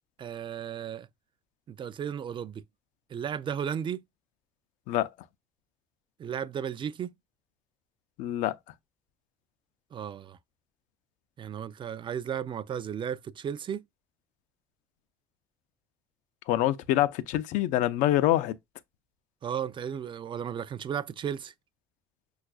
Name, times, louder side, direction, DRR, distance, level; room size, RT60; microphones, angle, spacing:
voice 1, 0.2-1.1 1.7-2.6 3.1-4.0 6.2-7.1 9.9-10.4 11.4-13.8 19.4-21.5, right 8 dB, 40° right, 0.4 m, -34 dB
voice 2, 8.2-8.5 16.5-18.5, left 14 dB, 70° left, 0.4 m, -25 dB
5.8 x 2.4 x 2.3 m
hypercardioid pair, 60°, 13 cm